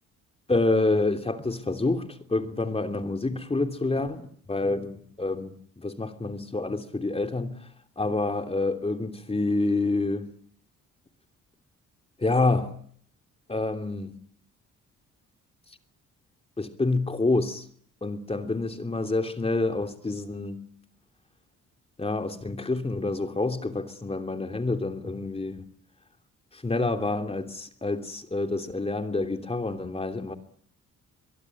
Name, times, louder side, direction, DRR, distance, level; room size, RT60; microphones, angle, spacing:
voice 1, 0.5-7.6 8.0-10.3 12.2-12.7 13.5-14.1 16.6-17.6 18.0-20.6 22.0-25.7 26.5-30.3, left 2 dB, 20° left, 3.1 m, -28 dB
23.5 x 22.5 x 10.0 m
cardioid pair, 90°, 30 cm